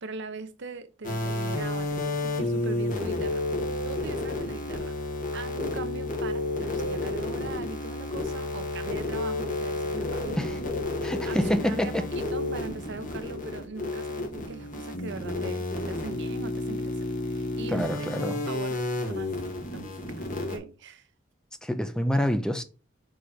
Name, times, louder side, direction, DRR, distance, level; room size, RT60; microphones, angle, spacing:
voice 1, 0.0-4.9 5.3-10.6 11.2-17.0 17.3-19.3 19.7-21.1, right 3 dB, 65° right, 0.8 m, -40 dB
sound 1, 1.0-20.6, left 2 dB, 45° left, 1.7 m, -31 dB
voice 2, 11.0-12.1 17.7-18.4 21.6-22.6, equal, 5° left, 0.5 m, -27 dB
4.8 x 4.3 x 5.7 m
head